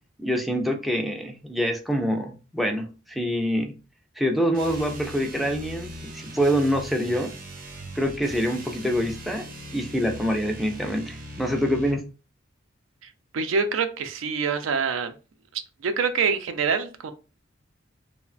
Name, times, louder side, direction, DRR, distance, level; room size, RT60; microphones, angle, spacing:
voice 1, 0.2-3.7 4.2-7.3 8.0-9.5 9.7-12.0, equal, ahead, 2 dB, 0.3 m, -25 dB
sound 1, 4.5-12.1, right 1 dB, 45° right, 0.7 m, -39 dB
voice 2, 13.3-15.1 15.8-17.1, right 5 dB, 80° right, 9 dB, 0.4 m, -25 dB
3.0 x 2.1 x 2.4 m, 0.33 s
head